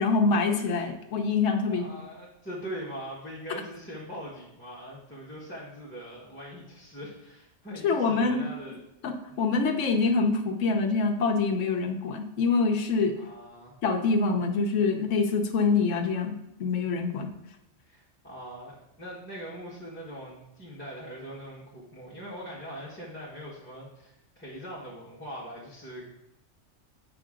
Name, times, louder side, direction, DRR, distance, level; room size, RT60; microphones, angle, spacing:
voice 1, 0.0-1.8 7.8-8.4 9.0-13.1 13.8-16.3 16.6-17.3, left 4 dB, 75° left, 3 dB, 1.2 m, -25 dB
voice 2, 1.7-8.8 9.3-9.4 13.2-13.7 17.8-26.1, equal, 10° left, -7 dB, 1.3 m, -42 dB
7.9 x 5.3 x 3.7 m, 0.84 s
omnidirectional pair, 1.3 m